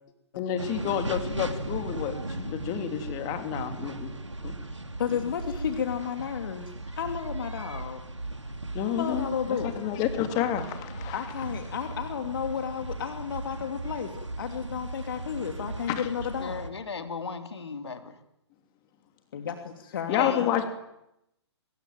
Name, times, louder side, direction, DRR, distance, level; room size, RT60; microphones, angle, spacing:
voice 1, 0.3-4.1 4.4-4.5 8.7-11.2 15.9-16.0 20.1-20.7, left 10 dB, 25° left, 7 dB, 3.3 m, -30 dB
sound 1, 0.6-16.7, right 2 dB, 85° right, 3.0 m, -37 dB
voice 2, 5.0-6.7 7.0-8.0 8.8-9.8 11.1-16.6 19.3-20.6, left 7 dB, 50° left, 6 dB, 2.9 m, -32 dB
voice 3, 16.4-18.1 20.1-20.4, left 5 dB, 65° left, 7 dB, 3.2 m, -35 dB
25.5 x 23.0 x 9.3 m, 0.83 s
figure-of-eight pair, 130°, 15 cm